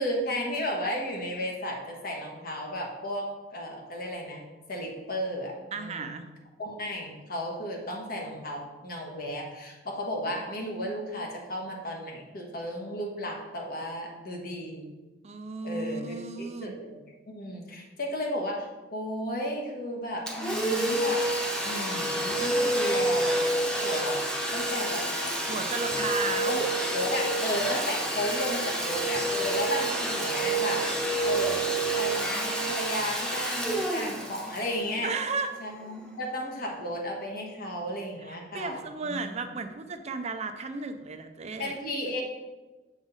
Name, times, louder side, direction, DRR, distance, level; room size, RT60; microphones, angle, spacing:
voice 1, 0.0-4.4 4.7-6.1 6.6-14.9 15.6-17.0 17.3-21.2 21.6-23.4 23.8-24.2 24.5-25.0 26.9-30.8 31.2-31.6 31.9-35.1 35.6-39.3 41.6-42.2, equal, 55° left, 0 dB, 1.4 m, -34 dB
voice 2, 5.7-6.2 15.2-16.8 25.5-26.7 35.0-35.6 38.2-41.7, right 4 dB, 35° right, 8 dB, 0.5 m, -34 dB
Domestic sounds home sounds, 20.3-35.7, right 1 dB, 5° left, 1.0 m, -28 dB
7.2 x 4.9 x 4.0 m, 1.2 s
head